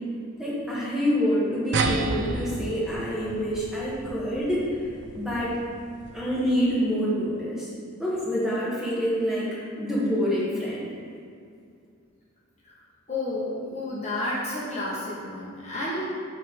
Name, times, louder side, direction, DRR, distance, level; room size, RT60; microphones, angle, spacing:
voice 1, 0.4-4.8 5.1-5.6 6.1-7.7 8.0-10.9, equal, ahead, -8 dB, 1.5 m, -26 dB
sound 1, 1.7-6.6, right 3 dB, 55° right, 0.5 m, -32 dB
voice 2, 13.1-16.1, left 1 dB, 30° left, -7 dB, 1.1 m, -31 dB
8.3 x 3.4 x 5.2 m, 2.4 s
head